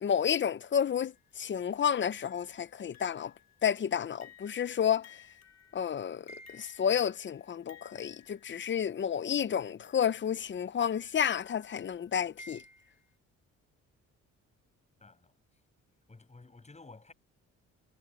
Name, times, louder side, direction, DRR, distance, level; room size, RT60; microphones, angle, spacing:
voice 1, 0.0-3.3 3.6-5.1 5.7-6.2 6.5-12.6, left 8 dB, 40° left, 0.7 m, -30 dB
sound 1, 0.7-1.3 2.1-9.0 9.8-13.2, left 4 dB, 60° left, 2.7 m, -57 dB
voice 2, 15.0-15.3 16.1-17.1, left 3 dB, 20° left, 7.8 m, -53 dB
cardioid pair, 90°, 30 cm